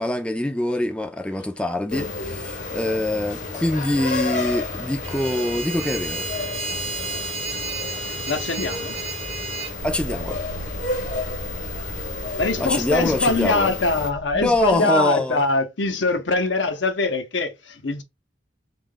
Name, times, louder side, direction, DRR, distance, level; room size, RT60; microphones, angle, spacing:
voice 1, 0.0-6.2 9.8-10.4 12.6-13.7 14.3-15.4, left 1 dB, 5° left, 0.4 m, -24 dB
sound 1, 1.9-14.1, left 3 dB, 45° left, 0.8 m, -31 dB
sound 2, 5.0-9.7, right 3 dB, 35° right, 0.8 m, -32 dB
voice 2, 8.3-9.0 12.4-18.0, left 3 dB, 75° left, 0.8 m, -23 dB
sound 3, 9.8-14.8, right 2 dB, 75° right, 0.4 m, -37 dB
3.7 x 2.4 x 3.8 m
head